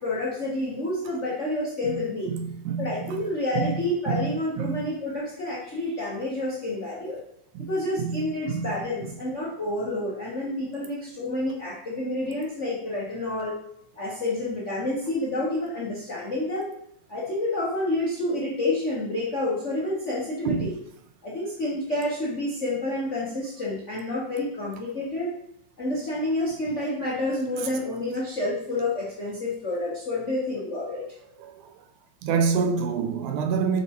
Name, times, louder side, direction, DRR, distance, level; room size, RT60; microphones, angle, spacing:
voice 1, 0.0-2.3 2.8-7.2 7.7-13.6 14.0-16.7 17.1-20.7 21.2-25.4 25.8-31.0, left 1 dB, 75° left, 0.6 m, -29 dB
voice 2, 2.3-3.2 3.5-3.8 4.1-4.3 4.6-4.9 7.6-7.7 8.0-8.8 20.5-20.7 27.6-27.7 31.4-31.7 32.2-33.8, right 6 dB, 85° right, 2.0 m, -27 dB
6.8 x 5.6 x 3.0 m
omnidirectional pair, 3.4 m